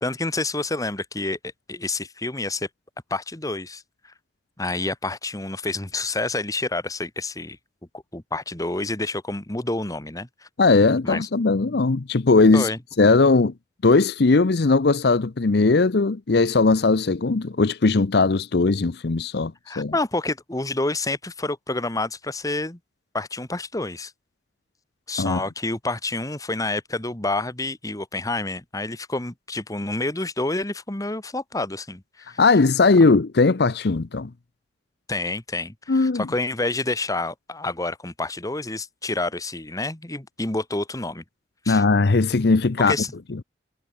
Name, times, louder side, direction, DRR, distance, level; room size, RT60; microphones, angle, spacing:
voice 1, 0.0-1.4 1.7-2.7 3.1-4.1 4.6-7.6 7.9-10.5 11.0-11.3 12.5-12.8 19.7-22.8 23.1-24.1 25.1-32.4 33.0-33.1 35.1-41.2 41.6-41.8 42.8-43.2, left 2 dB, 20° left, 1.6 m, -28 dB
voice 2, 10.6-12.7 13.0-13.5 13.8-19.9 25.2-25.4 32.4-34.3 35.9-36.3 41.7-42.9, left 3 dB, 65° left, 0.7 m, -19 dB
head